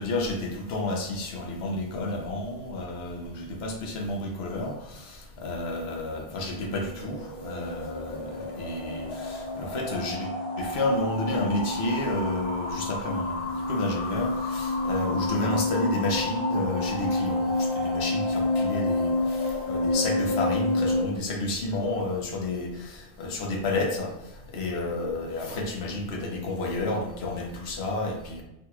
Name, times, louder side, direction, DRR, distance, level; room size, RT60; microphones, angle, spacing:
voice 1, 0.0-10.3 10.6-24.1 24.5-28.4, left 2 dB, 90° left, 2 dB, 0.9 m, -31 dB
sound 1, 6.5-21.0, left 2 dB, 35° left, 0.6 m, -29 dB
3.9 x 2.9 x 2.3 m, 0.93 s
omnidirectional pair, 1.0 m